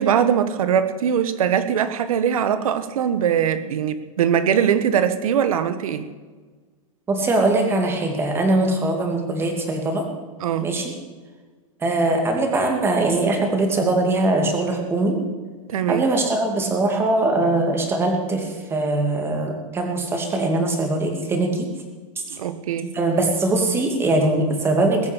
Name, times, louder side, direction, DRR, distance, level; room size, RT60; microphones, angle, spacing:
voice 1, 0.0-6.0 10.4-10.7 15.7-16.0 22.3-22.9, right 8 dB, 85° right, 12 dB, 1.3 m, -21 dB
voice 2, 7.1-10.1 10.6-10.9 11.8-15.2 15.9-21.7 22.9-25.1, right 2 dB, 15° right, 3 dB, 2.5 m, -21 dB
21.0 x 7.1 x 8.6 m, 1.4 s
supercardioid pair, 160°, 18 cm